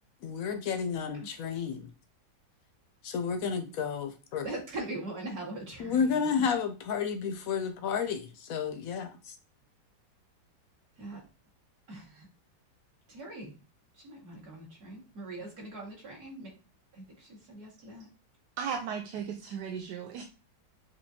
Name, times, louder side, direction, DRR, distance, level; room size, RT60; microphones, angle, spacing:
voice 1, 0.2-1.9 3.0-4.5 5.8-9.3, left 6 dB, 70° left, 8 dB, 0.8 m, -31 dB
voice 2, 4.4-6.0 6.4-6.5 11.0-11.2 11.9-12.3 13.1-13.6 14.0-16.5 16.9-18.1, right 2 dB, 55° right, -4 dB, 2.3 m, -41 dB
voice 3, 18.6-20.2, right 7 dB, 70° right, 3 dB, 1.1 m, -36 dB
6.7 x 2.8 x 2.8 m, 0.32 s
omnidirectional pair, 2.0 m